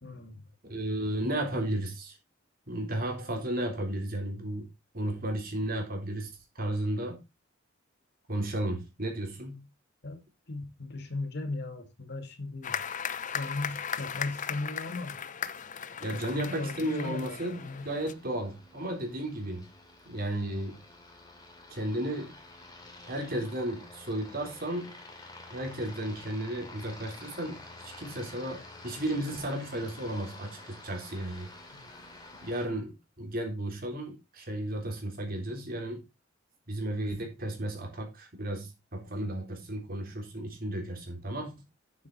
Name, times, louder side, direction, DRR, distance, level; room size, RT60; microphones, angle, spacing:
voice 1, 0.0-0.5 1.2-1.4 10.0-10.2 10.5-12.8 13.3-15.2 16.1-17.9 31.7-31.9, left 2 dB, 55° left, 1.9 m, -37 dB
voice 2, 0.6-2.2 2.7-4.7 4.9-6.3 6.6-7.2 8.3-9.6 16.0-19.7 20.1-20.8 21.7-22.3 23.1-24.9 25.5-31.5 32.4-36.0 36.7-41.5, right 1 dB, 50° right, 3.7 m, -34 dB
sound 1, 12.6-18.1, left 7 dB, 40° left, 0.7 m, -37 dB
Aircraft, 16.3-32.7, left 2 dB, 20° left, 2.8 m, -50 dB
9.1 x 7.7 x 4.1 m
head